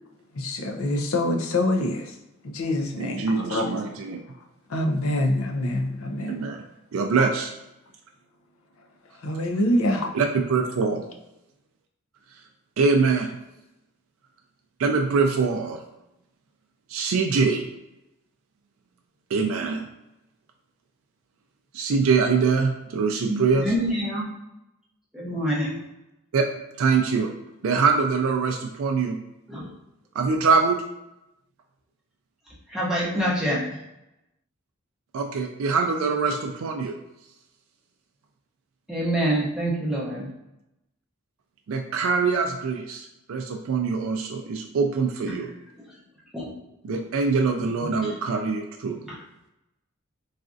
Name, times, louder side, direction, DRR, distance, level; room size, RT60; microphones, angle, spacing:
voice 1, 0.3-2.2 2.4-3.6 4.7-6.4 9.1-10.1, left 1 dB, 85° left, 3 dB, 0.5 m, -25 dB
voice 2, 3.0-4.2 6.3-6.6 6.9-7.5 10.1-11.0 12.3-12.4 12.8-13.4 14.8-15.8 16.9-17.7 19.3-19.8 21.7-23.7 26.3-26.4 26.8-27.3 27.6-29.2 30.1-30.8 35.1-36.9 41.7-45.5 46.8-49.0, right 4 dB, 75° right, 3 dB, 0.4 m, -23 dB
voice 3, 23.2-24.3 25.1-25.8 29.5-29.7 32.7-33.6 38.9-40.3 45.3-45.4 45.8-46.0 46.3-46.5 48.0-48.1 49.0-49.2, equal, 5° right, -7 dB, 0.7 m, -26 dB
4.1 x 2.4 x 2.5 m, 0.92 s
head